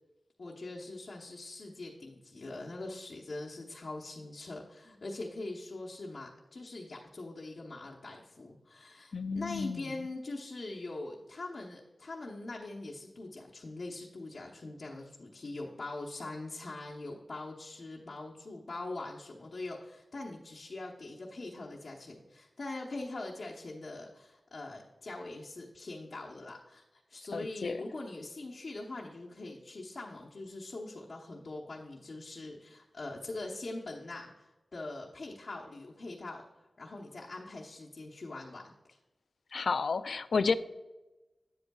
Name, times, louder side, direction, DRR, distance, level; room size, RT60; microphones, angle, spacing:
voice 1, 0.4-38.7, left 2 dB, 65° left, -4 dB, 0.9 m, -43 dB
voice 2, 9.1-9.8 27.3-27.8 39.5-40.5, left 4 dB, 80° left, 13 dB, 0.3 m, -31 dB
9.4 x 8.0 x 2.3 m, 1.1 s
wide cardioid pair, 70°, 0 cm